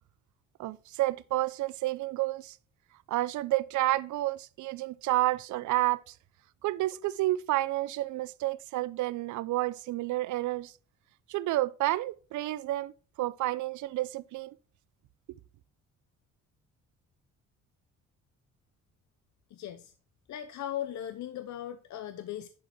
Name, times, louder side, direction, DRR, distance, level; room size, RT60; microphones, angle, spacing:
voice 1, 0.6-2.6 3.1-6.1 6.6-10.7 11.3-12.9 13.2-14.6, right 16 dB, 75° right, 0.5 m, -30 dB
voice 2, 19.5-19.9 20.3-22.5, left 11 dB, 65° left, 0.8 m, -38 dB
11.0 x 4.5 x 4.3 m
cardioid pair, 90°, 30 cm